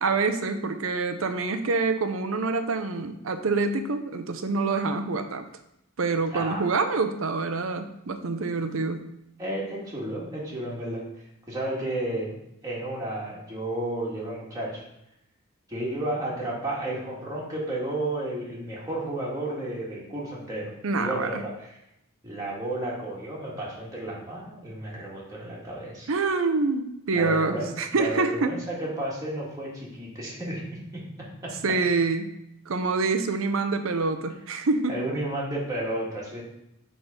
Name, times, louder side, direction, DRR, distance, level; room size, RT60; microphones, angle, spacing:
voice 1, 0.0-5.4 6.0-9.1 20.8-21.4 26.1-28.5 31.6-32.3 32.7-35.0, right 3 dB, 75° right, 8 dB, 0.6 m, -26 dB
voice 2, 6.3-6.6 9.4-12.4 12.6-14.8 15.7-21.7 22.2-26.1 27.1-31.0 31.4-31.5 34.9-36.4, right 1 dB, 15° right, -5 dB, 1.9 m, -32 dB
6.2 x 3.7 x 5.2 m, 0.81 s
head